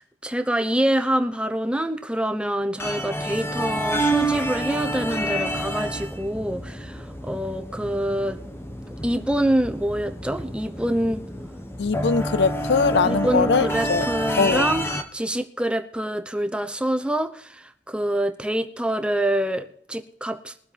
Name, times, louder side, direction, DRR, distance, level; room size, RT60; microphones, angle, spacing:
voice 1, 0.0-8.4 9.0-11.2 13.0-14.8 15.1-20.5, right 1 dB, 5° right, 0.9 m, -26 dB
sound 1, 2.8-15.0, right 1 dB, 15° left, 1.3 m, -29 dB
voice 2, 11.8-14.0 14.4-14.7, left 5 dB, 65° left, 0.5 m, -21 dB
22.5 x 7.8 x 3.4 m
head